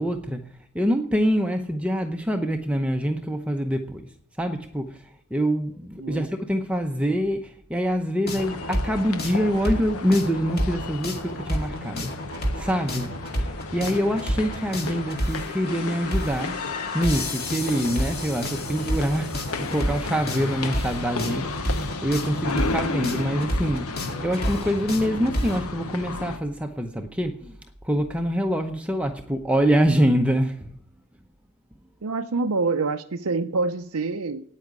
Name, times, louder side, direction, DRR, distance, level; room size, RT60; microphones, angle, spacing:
voice 1, 0.0-4.1 4.4-12.1 12.5-13.1 13.4-16.6 16.9-27.5 27.8-30.7, equal, 5° right, 0.7 m, -25 dB
sound 1, 8.3-26.4, left 3 dB, 80° left, 0.9 m, -34 dB
sound 2, 8.3-25.6, equal, 45° left, 2.2 m, -30 dB
voice 2, 32.0-34.4, right 3 dB, 85° right, 0.7 m, -26 dB
9.2 x 8.6 x 9.5 m
head